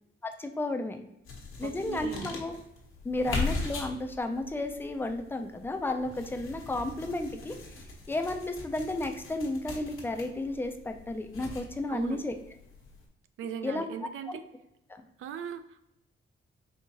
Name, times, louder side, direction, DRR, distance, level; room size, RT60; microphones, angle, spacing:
voice 1, 0.2-1.0 1.6-2.6 3.0-7.6 8.1-12.3 13.6-13.8 14.3-14.4, left 2 dB, 10° left, 6 dB, 0.3 m, -33 dB
sound 1, 1.2-13.0, left 3 dB, 85° left, 1.1 m, -40 dB
voice 2, 1.6-2.3 11.9-12.2 13.4-14.4 15.2-15.9, right 8 dB, 85° right, 11 dB, 0.4 m, -39 dB
4.5 x 3.5 x 2.8 m, 0.83 s
wide cardioid pair, 160°, 21 cm